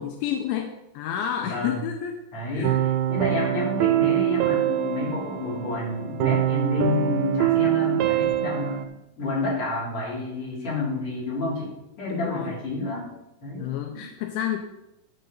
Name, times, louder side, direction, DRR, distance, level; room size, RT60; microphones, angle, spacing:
voice 1, 0.0-2.2 2.5-2.8 12.1-12.5 13.6-14.6, left 9 dB, 85° left, 4 dB, 2.8 m, -30 dB
voice 2, 1.4-1.8 2.3-8.8 9.2-13.1 13.4-13.7 13.9-14.0, left 3 dB, 30° left, -6 dB, 3.7 m, -29 dB
sound 1, 2.6-8.9, right 12 dB, 85° right, 2.7 m, -24 dB
11.5 x 6.7 x 4.2 m, 0.89 s
omnidirectional pair, 5.7 m